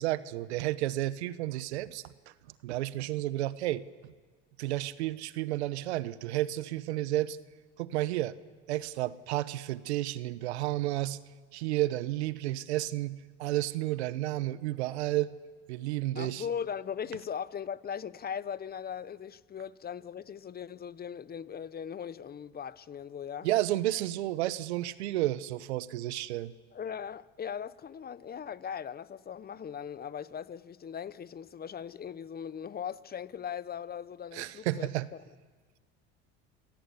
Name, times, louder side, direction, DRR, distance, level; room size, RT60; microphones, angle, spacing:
voice 1, 0.0-2.3 2.6-3.8 4.6-7.4 7.8-8.3 8.7-11.2 11.5-15.3 15.7-16.4 23.4-26.5 34.3-35.1, right 15 dB, 90° right, 1.0 m, -31 dB
voice 2, 16.1-23.5 26.7-34.9, left 8 dB, 30° left, 0.8 m, -39 dB
27.0 x 17.5 x 8.4 m
supercardioid pair, 90°, 32 cm